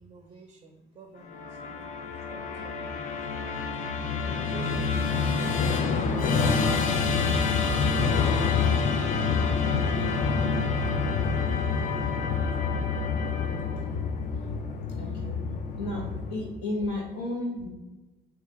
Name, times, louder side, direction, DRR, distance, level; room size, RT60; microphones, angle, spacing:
voice 1, 0.0-1.9 2.3-3.1 4.2-7.1 9.1-9.6 10.4-11.3 11.8-12.4, right 4 dB, 30° right, 4 dB, 0.4 m, -50 dB
Musical instrument, 1.3-16.6, left 5 dB, 50° left, 0.5 m, -27 dB
voice 2, 15.0-15.4 15.8-17.7, left 2 dB, 85° left, -1 dB, 1.1 m, -33 dB
3.2 x 2.4 x 3.9 m, 1.1 s
cardioid pair, 110°, 17 cm